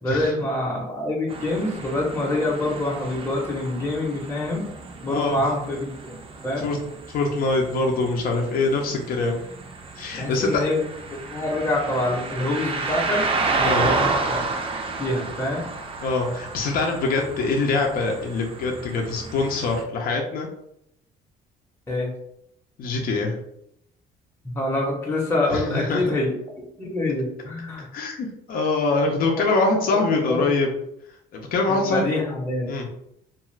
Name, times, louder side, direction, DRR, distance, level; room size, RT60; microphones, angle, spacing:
voice 1, 0.0-4.7 5.0-6.1 6.4-6.6 10.2-10.8 11.2-13.3 13.6-14.4 15.0-15.6 21.9-22.1 24.4-26.4 26.8-27.9 29.4-29.5 29.9-30.0 30.3-30.4 31.7-32.7, left 1 dB, 15° left, -4 dB, 0.8 m, -26 dB
sound 1, 1.3-19.8, right 3 dB, 35° right, 0.5 m, -31 dB
voice 2, 7.1-9.4 10.0-10.5 13.6-13.9 16.0-20.5 22.8-23.3 25.5-26.0 27.9-30.7 31.3-32.2 32.7-32.9, left 3 dB, 60° left, 1 dB, 0.6 m, -24 dB
2.5 x 2.4 x 3.1 m, 0.76 s
cardioid pair, 110°, 17 cm